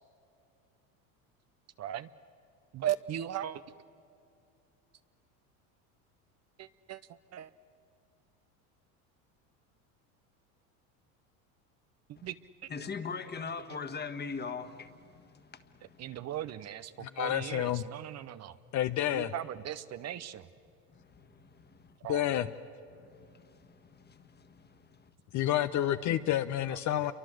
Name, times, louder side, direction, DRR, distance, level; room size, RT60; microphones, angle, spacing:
voice 1, 1.8-2.1 2.7-3.6 6.6-7.5 12.1-12.4 12.6-12.7 16.0-18.6 19.1-20.5 22.0-22.3 26.7-27.1, right 11 dB, 35° right, 13 dB, 0.7 m, -38 dB
voice 2, 12.7-16.2 20.9-22.0 22.9-25.1, left 5 dB, 20° left, 9 dB, 1.7 m, -42 dB
voice 3, 17.0-17.8 18.7-19.3 22.1-22.5 25.3-27.1, left 12 dB, 40° left, 11 dB, 0.8 m, -29 dB
28.5 x 23.5 x 7.8 m, 2.6 s
supercardioid pair, 105°, 44 cm